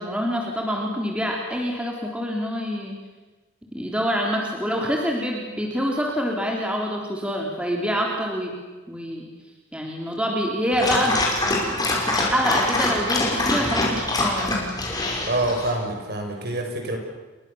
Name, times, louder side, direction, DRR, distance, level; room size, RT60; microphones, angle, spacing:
voice 1, 0.0-3.0 3.7-8.5 8.9-9.3 9.7-11.2 12.0-14.6, equal, 5° right, 0 dB, 3.5 m, -26 dB
Dog, 10.7-15.7, left 2 dB, 20° left, 5.5 m, -24 dB
voice 2, 15.3-17.0, right 1 dB, 50° right, 3 dB, 6.3 m, -26 dB
30.0 x 23.5 x 7.1 m, 1.2 s
head